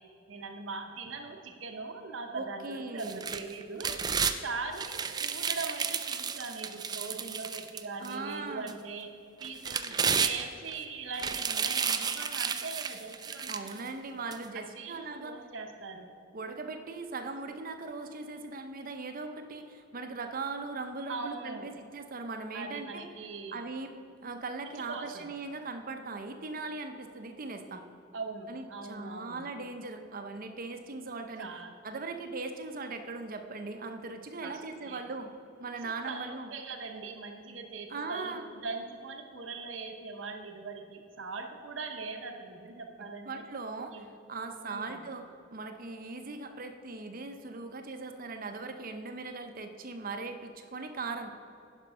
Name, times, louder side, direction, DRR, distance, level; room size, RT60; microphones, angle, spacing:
voice 1, 0.3-3.9 4.4-9.1 9.4-13.6 14.5-16.1 21.1-21.7 22.5-23.6 24.6-25.3 28.1-29.4 31.4-31.7 34.4-35.0 35.8-43.4 43.9-44.1 44.6-45.0, right 4 dB, 80° right, 4 dB, 0.9 m, -41 dB
voice 2, 2.3-3.2 8.0-8.7 13.5-15.3 16.3-23.1 23.5-23.9 24.2-27.9 28.5-31.5 31.8-35.3 35.6-36.5 37.9-38.4 43.0-45.3 45.5-51.3, right 3 dB, 50° right, 6 dB, 0.7 m, -39 dB
sound 1, 3.0-4.4 4.8-8.1 8.7-8.8 9.4-10.7 11.1-13.8 14.3-14.4, right 6 dB, 20° right, 0.4 m, -32 dB
10.5 x 5.3 x 5.6 m, 2.6 s
head